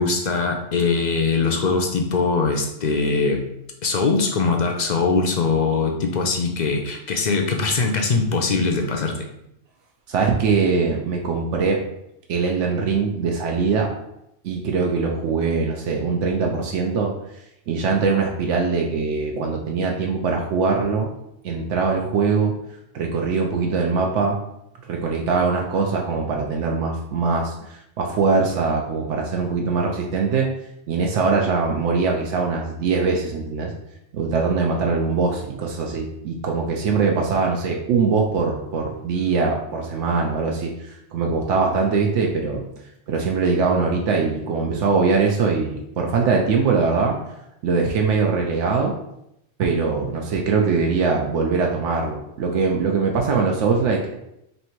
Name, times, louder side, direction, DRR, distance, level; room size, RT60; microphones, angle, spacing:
voice 1, 0.0-3.4 3.8-9.2, left 4 dB, 55° left, 2 dB, 0.5 m, -21 dB
voice 2, 10.1-11.8 12.3-13.9 14.4-17.1 17.7-21.1 21.4-22.5 22.9-24.4 24.9-30.5 30.9-33.7 34.1-42.6 43.1-47.2 47.6-48.9 49.6-54.1, right 4 dB, 80° right, 1 dB, 0.9 m, -22 dB
3.3 x 2.7 x 4.4 m, 0.80 s
omnidirectional pair, 1.2 m